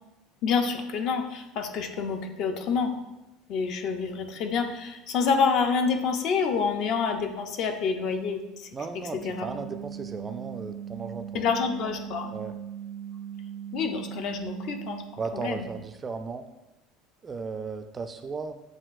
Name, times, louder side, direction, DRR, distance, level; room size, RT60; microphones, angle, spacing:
voice 1, 0.4-3.0 3.5-8.7 8.9-9.5 11.3-12.3 13.7-15.7, left 5 dB, 55° left, 6 dB, 0.5 m, -28 dB
voice 2, 8.7-11.4 12.3-12.5 15.2-16.4 17.2-18.6, right 4 dB, 25° right, 8 dB, 0.3 m, -35 dB
sound 1, 9.1-15.0, right 9 dB, 40° left, 1.0 m, -39 dB
7.3 x 2.5 x 2.5 m, 0.96 s
supercardioid pair, 120°, 0 cm